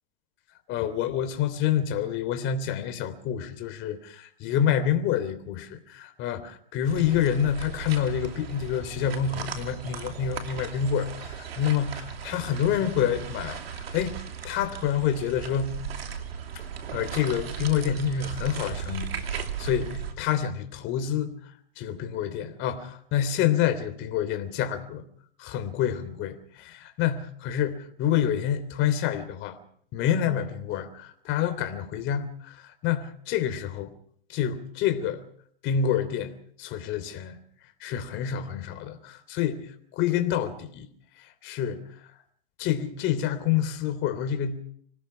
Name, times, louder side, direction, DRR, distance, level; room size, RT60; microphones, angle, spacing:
voice 1, 0.7-13.6 13.9-14.2 14.4-15.8 16.9-21.4 21.8-25.0 25.4-29.6 29.9-33.9 34.3-35.2 35.6-37.4 37.8-40.9 41.4-41.9 42.6-44.6, left 9 dB, 40° left, 3.3 m, -28 dB
sound 1, 6.8-20.1, right 7 dB, 85° right, 2.8 m, -37 dB
26.0 x 18.5 x 5.8 m
hypercardioid pair, 120°, 30 cm